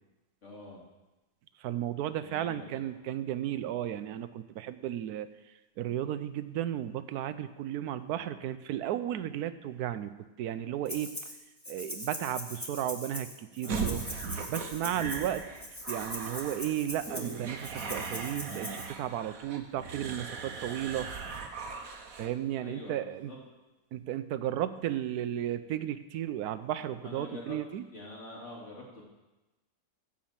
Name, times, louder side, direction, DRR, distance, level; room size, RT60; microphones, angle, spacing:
voice 1, 0.4-0.8 2.2-2.9 13.6-14.1 14.5-14.9 22.6-23.4 27.0-27.6 27.9-29.0, left 2 dB, 50° left, -2 dB, 2.7 m, -46 dB
voice 2, 1.6-5.3 5.8-10.1 10.4-11.1 11.7-14.0 14.5-15.4 15.9-21.1 22.2-23.3 23.9-27.8, right 11 dB, 85° right, 12 dB, 1.1 m, -34 dB
Rattle (instrument), 10.9-11.4 11.6-18.9, left 1 dB, 10° left, 1.5 m, -41 dB
sound 1, 13.7-22.3, right 5 dB, 65° right, 1.5 m, -38 dB
14.5 x 5.2 x 7.3 m, 1.1 s
omnidirectional pair, 1.6 m